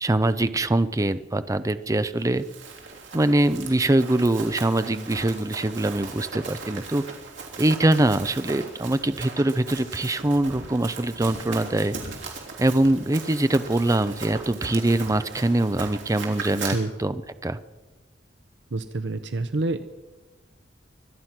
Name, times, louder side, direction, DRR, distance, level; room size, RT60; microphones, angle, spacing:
voice 1, 0.0-2.4 3.1-7.0 7.6-11.9 12.6-17.6, right 1 dB, 20° right, 13 dB, 0.5 m, -23 dB
Run, 2.2-16.7, right 4 dB, 85° right, 3.2 m, -38 dB
voice 2, 18.7-19.8, right 2 dB, 70° right, 10 dB, 0.7 m, -27 dB
24.5 x 9.5 x 5.9 m, 1.2 s
head